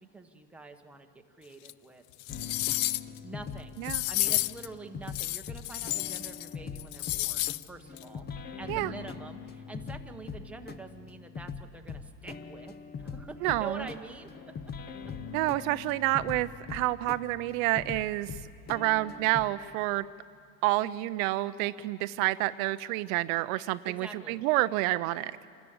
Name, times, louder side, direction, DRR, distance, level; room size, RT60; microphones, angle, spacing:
voice 1, 0.0-2.0 3.2-3.8 4.1-8.3 8.6-14.5 23.8-24.4, right 3 dB, 5° right, 4 dB, 0.9 m, -45 dB
sound 1, 1.6-1.7 2.2-3.2 3.8-4.7 5.1-6.5 6.7-7.6 8.0-8.1, left 18 dB, 65° left, 0.6 m, -31 dB
sound 2, 2.3-19.4, left 6 dB, 20° left, 0.6 m, -42 dB
voice 2, 13.4-13.8 15.3-18.3 18.7-20.1 20.6-25.3, right 18 dB, 60° right, 14 dB, 0.6 m, -28 dB
28.5 x 13.0 x 8.7 m, 2.3 s
supercardioid pair, 140°, 49 cm